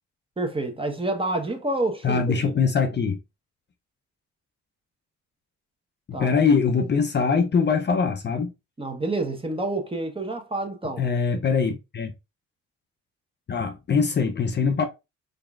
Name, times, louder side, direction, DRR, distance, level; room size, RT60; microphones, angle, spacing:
voice 1, 0.4-2.5 6.1-6.3 8.8-11.0, right 2 dB, 20° right, 1.0 m, -28 dB
voice 2, 2.0-3.2 6.1-8.5 11.0-12.1 13.5-14.9, left 5 dB, 35° left, 0.6 m, -22 dB
3.7 x 3.5 x 2.4 m
cardioid pair, 90°, 30 cm